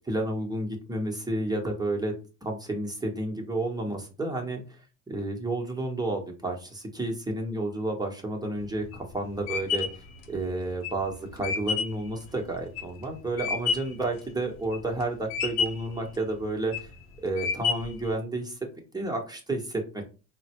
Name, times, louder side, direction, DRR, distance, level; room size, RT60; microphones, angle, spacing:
voice 1, 0.0-2.1 2.4-4.8 5.1-9.9 10.3-16.9 17.2-18.6 18.9-20.0, right 2 dB, 10° right, 1 dB, 1.1 m, -31 dB
sound 1, 8.6-14.0 14.5-15.0 15.3-16.0 16.5-16.9 17.4-18.1, left 5 dB, 75° left, 0.8 m, -30 dB
3.7 x 2.2 x 2.9 m, 0.33 s
supercardioid pair, 75°, 38 cm